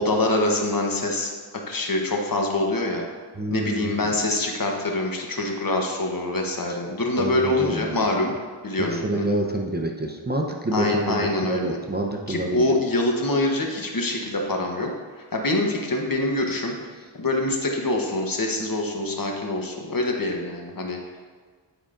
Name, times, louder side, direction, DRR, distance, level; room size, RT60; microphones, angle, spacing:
voice 1, 0.0-1.3 1.7-3.0 3.5-8.3 8.6-9.3 10.7-11.8 12.3-14.9 15.2-16.8 17.1-21.0, left 2 dB, 45° left, 1 dB, 1.0 m, -25 dB
voice 2, 3.4-4.1 6.7-6.8 7.2-8.0 8.8-12.6, right 1 dB, 20° right, 1 dB, 0.6 m, -28 dB
9.7 x 5.0 x 2.5 m, 1.6 s
wide cardioid pair, 60°, 46 cm